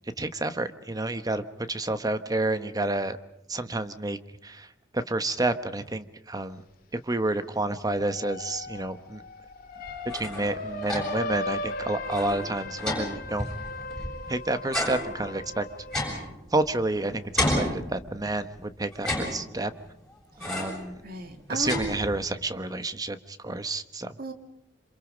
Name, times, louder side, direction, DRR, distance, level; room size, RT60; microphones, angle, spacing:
voice 1, 0.2-1.4 1.7-3.2 3.5-4.7 4.9-6.6 7.0-9.2 10.1-13.5 14.3-15.6 16.5-19.7 20.5-21.0 21.5-24.1, right 2 dB, 20° right, 11 dB, 1.1 m, -29 dB
sound 1, 7.9-16.1, left 1 dB, 50° left, 2.0 m, -37 dB
sound 2, 9.9-11.3 11.7-11.8 12.1-14.3 14.7-16.9 17.4-18.4 18.9-19.8 20.4-20.9 21.3-22.4, left 1 dB, 5° left, 7.3 m, -32 dB
voice 2, 21.0-22.0 24.2-24.3, right 2 dB, 55° right, 6 dB, 2.3 m, -35 dB
27.0 x 27.0 x 5.1 m, 0.79 s
head